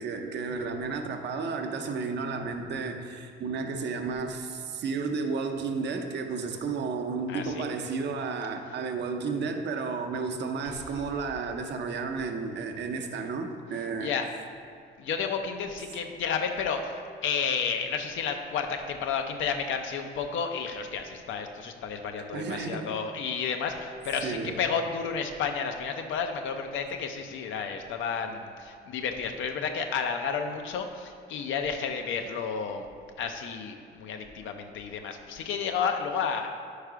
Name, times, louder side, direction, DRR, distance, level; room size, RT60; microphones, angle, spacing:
voice 1, 0.0-14.1 22.3-22.9 24.2-24.6, right 4 dB, 60° right, 5 dB, 0.6 m, -32 dB
voice 2, 7.3-7.6 14.0-14.3 15.0-32.9 33.2-36.5, left 6 dB, 80° left, 5 dB, 0.6 m, -31 dB
4.8 x 4.5 x 4.9 m, 2.3 s
cardioid pair, 90°, 20 cm